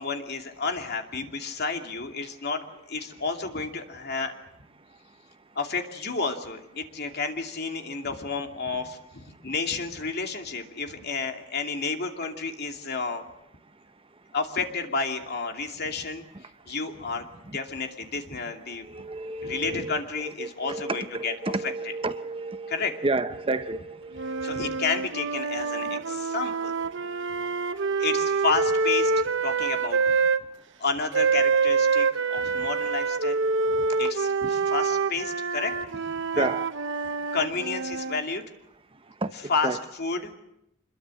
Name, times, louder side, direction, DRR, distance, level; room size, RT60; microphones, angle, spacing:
voice 1, 0.0-4.3 5.5-13.2 14.3-17.3 17.5-18.8 19.4-21.3 22.7-22.9 24.4-26.7 28.0-30.1 30.8-33.4 33.7-36.0 36.3-36.5 37.3-38.4 39.5-39.7 40.0-40.3, left 4 dB, 55° left, 2.7 m, -31 dB
voice 2, 18.7-24.8 25.7-26.3 27.0-28.0 36.3-36.7 39.0-39.8, right 2 dB, 25° right, 0.8 m, -32 dB
sound 1, 24.2-30.4 31.1-38.2, right 4 dB, 65° right, 0.9 m, -26 dB
26.0 x 22.0 x 7.8 m
head